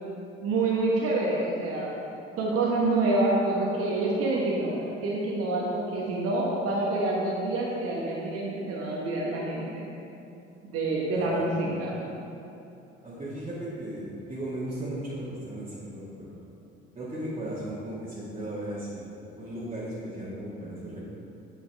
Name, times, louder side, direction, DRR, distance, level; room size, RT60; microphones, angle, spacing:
voice 1, 0.4-1.9 2.4-9.9 10.6-12.1, right 2 dB, 45° right, -3 dB, 1.4 m, -27 dB
voice 2, 11.1-11.6 13.0-16.4 17.0-21.0, right 1 dB, 20° right, -9 dB, 1.9 m, -36 dB
9.3 x 7.0 x 3.5 m, 2.8 s
figure-of-eight pair, 55°, 33 cm